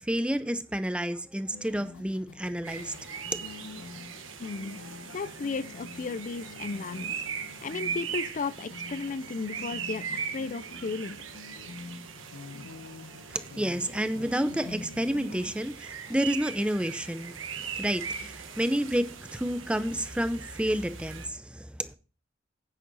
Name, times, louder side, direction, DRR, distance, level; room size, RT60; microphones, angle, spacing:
voice 1, 0.0-2.9 3.3-3.4 13.3-17.3 17.8-22.0, equal, 5° right, 0.6 m, -30 dB
sound 1, 1.5-15.5, left 3 dB, 90° left, 1.0 m, -46 dB
sound 2, 2.6-21.3, right 6 dB, 85° right, 1.5 m, -40 dB
voice 2, 4.4-4.8 5.1-7.1 7.6-11.2, left 4 dB, 40° left, 0.4 m, -34 dB
9.2 x 9.0 x 4.0 m
head